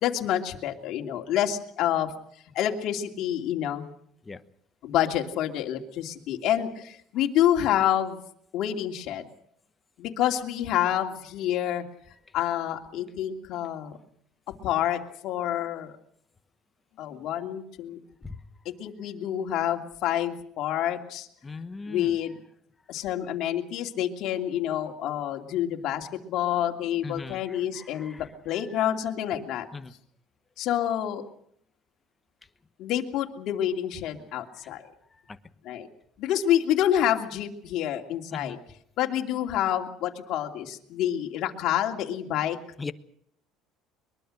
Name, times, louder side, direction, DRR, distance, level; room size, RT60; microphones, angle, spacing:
voice 1, 0.0-2.1 2.5-3.9 4.8-8.2 8.5-9.2 10.0-11.8 12.3-14.0 14.6-15.9 17.0-18.0 18.8-21.3 21.9-22.4 22.9-29.7 30.6-31.2 32.8-34.9 35.6-35.9 36.2-38.6 39.0-42.6, left 11 dB, 55° left, 3 dB, 2.8 m, -28 dB
voice 2, 21.4-22.2 27.0-28.8 29.7-29.9 34.6-34.7 35.1-35.4 38.3-38.6 42.8-42.9, left 4 dB, 15° left, 11 dB, 1.1 m, -40 dB
22.5 x 22.5 x 6.6 m, 0.67 s
cardioid pair, 150°, 0 cm